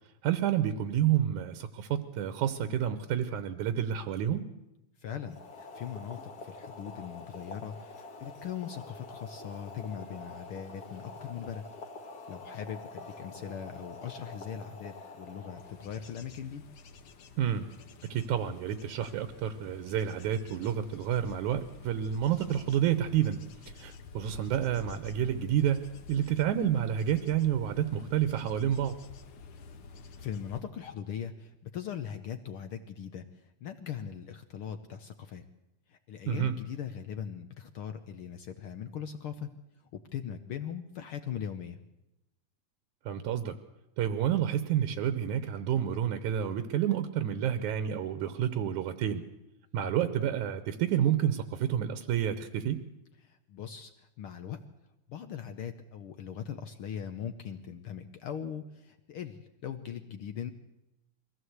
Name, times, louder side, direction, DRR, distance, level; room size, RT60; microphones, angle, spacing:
voice 1, 0.2-4.4 17.4-17.7 18.1-23.4 23.7-29.0 36.3-36.6 43.1-43.6 44.0-49.2 49.7-52.8, right 10 dB, 80° right, 11 dB, 2.3 m, -29 dB
voice 2, 5.0-11.6 12.3-16.6 30.1-33.2 33.6-35.4 35.9-39.5 39.9-41.8 53.2-54.6 55.1-60.5, left 8 dB, 75° left, 8 dB, 1.3 m, -40 dB
Boiling, 5.2-16.2, left 3 dB, 40° left, 1.4 m, -46 dB
Bird / Insect / Wind, 15.6-30.6, left 4 dB, 60° left, 1.6 m, -49 dB
22.5 x 16.0 x 8.0 m, 0.93 s
omnidirectional pair, 3.5 m